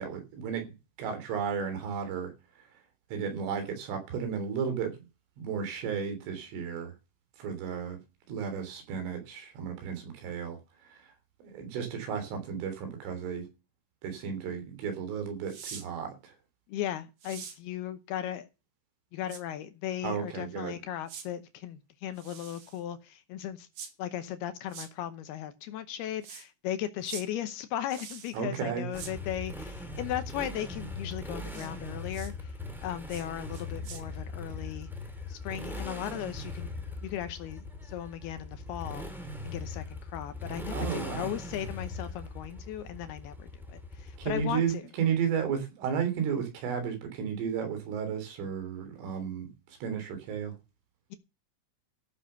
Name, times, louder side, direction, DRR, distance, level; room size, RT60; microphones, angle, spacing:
voice 1, 0.0-2.3 3.1-5.0 5.4-6.9 7.4-8.0 8.3-10.6 10.9-11.0 11.4-13.5 14.0-16.3 20.0-20.8 28.3-28.9 40.7-41.3 44.2-49.5 49.8-50.6, right 7 dB, 80° right, 5.8 m, -33 dB
sliding paper on table, 15.5-15.9 17.2-17.6 19.3-19.4 21.1-21.3 22.2-22.8 23.8-23.9 24.7-24.9 26.2-26.5 27.0-27.3 27.9-28.4 28.9-29.1 31.5-31.7 32.1-32.3 33.1-33.3 33.5-34.0, right 7 dB, 50° right, 3.0 m, -44 dB
voice 2, 16.7-18.5 19.1-23.7 24.0-32.6 32.8-34.9 35.3-36.7 37.0-39.1 39.4-44.8, left 11 dB, 75° left, 2.4 m, -37 dB
Motorcycle, 28.9-44.7, left 2 dB, ahead, 1.3 m, -40 dB
15.0 x 6.8 x 6.7 m
omnidirectional pair, 5.6 m